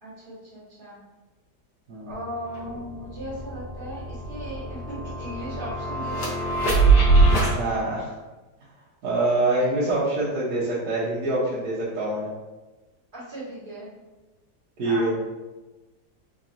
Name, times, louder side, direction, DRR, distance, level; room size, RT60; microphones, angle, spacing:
voice 1, 0.0-1.0 2.1-6.9 13.1-13.9 14.8-15.2, right 1 dB, 30° right, -10 dB, 1.6 m, -37 dB
sound 1, 2.1-2.2 2.5-7.5, right 3 dB, 85° left, 1.7 m, -22 dB
voice 2, 7.5-8.1 9.0-12.3 14.8-15.2, right 2 dB, 70° right, -9 dB, 1.4 m, -25 dB
4.0 x 2.9 x 2.5 m, 1.1 s
omnidirectional pair, 1.8 m